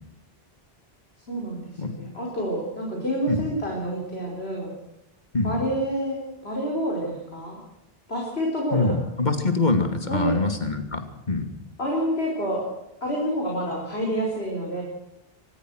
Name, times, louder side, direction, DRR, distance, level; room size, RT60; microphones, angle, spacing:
voice 1, 1.3-4.7 5.4-7.6 8.1-9.0 10.1-10.4 11.8-12.6 13.0-14.8, equal, 85° left, -1 dB, 5.2 m, -28 dB
voice 2, 8.7-11.5, left 3 dB, 45° left, 7 dB, 2.7 m, -24 dB
24.5 x 19.5 x 6.4 m, 0.84 s
omnidirectional pair, 1.0 m